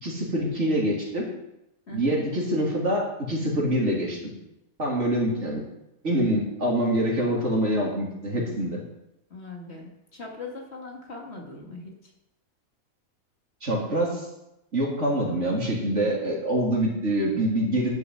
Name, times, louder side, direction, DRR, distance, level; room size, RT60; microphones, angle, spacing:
voice 1, 0.0-1.3 1.9-4.2 4.8-5.6 6.0-8.8 13.6-14.2 14.7-17.9, right 1 dB, 55° right, -2 dB, 3.5 m, -25 dB
voice 2, 1.9-2.2 9.3-11.9, left 2 dB, 50° left, 0 dB, 2.4 m, -40 dB
11.0 x 7.0 x 7.6 m, 0.88 s
omnidirectional pair, 1.5 m